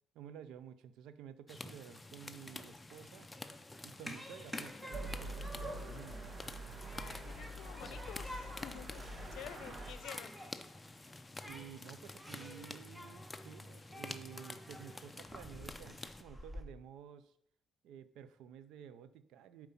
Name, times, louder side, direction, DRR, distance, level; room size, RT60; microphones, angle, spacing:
voice 1, 0.1-3.3 3.8-6.3 11.4-17.3 17.8-19.7, right 9 dB, 90° right, 13 dB, 0.5 m, -52 dB
sound 1, 1.5-16.2, left 2 dB, 15° left, 0.6 m, -50 dB
Human group actions, 2.3-16.6, left 1 dB, 5° right, 1.2 m, -52 dB
sound 2, 4.9-9.9, right 1 dB, 45° right, 1.6 m, -45 dB
voice 2, 6.9-9.0 9.3-10.4, left 10 dB, 85° left, 13 dB, 0.6 m, -50 dB
7.8 x 4.7 x 5.6 m, 0.74 s
cardioid pair, 90°, 0 cm